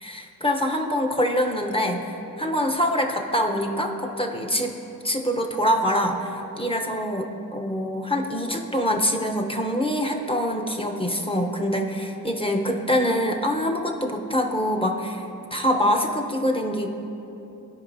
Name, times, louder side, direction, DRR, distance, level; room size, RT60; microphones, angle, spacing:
voice 1, 0.0-4.8 5.0-15.2 15.5-16.9, equal, 15° left, 2 dB, 0.8 m, -25 dB
14.0 x 5.1 x 2.7 m, 2.9 s
cardioid pair, 50°, 37 cm